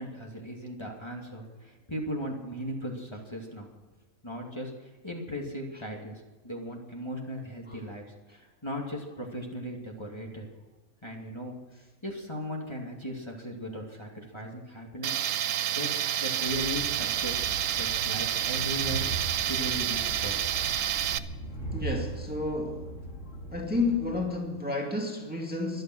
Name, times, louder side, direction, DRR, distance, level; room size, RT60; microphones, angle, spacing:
voice 1, 0.0-3.7 4.2-8.0 8.3-10.5 11.0-11.6 12.0-15.2 15.7-15.9 16.2-17.4 17.8-19.0 19.4-20.7, equal, 20° left, -1 dB, 2.5 m, -37 dB
Tools, 15.0-21.2, right 11 dB, 75° right, 1.1 m, -29 dB
Train, 16.5-24.3, right 2 dB, 65° left, 2.7 m, -39 dB
voice 2, 21.7-22.9 23.5-25.8, left 2 dB, 5° right, 0 dB, 2.1 m, -31 dB
24.0 x 9.3 x 6.2 m, 1.2 s
omnidirectional pair, 1.4 m